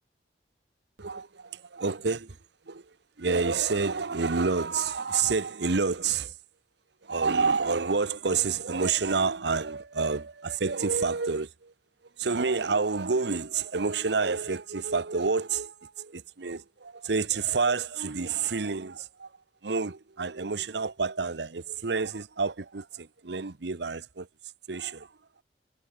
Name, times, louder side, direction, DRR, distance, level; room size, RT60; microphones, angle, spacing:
voice 1, 1.0-2.4 2.6-6.4 7.0-11.7 12.2-19.4 19.6-24.3 24.7-25.2, right 4 dB, 70° right, 0.9 m, -29 dB
head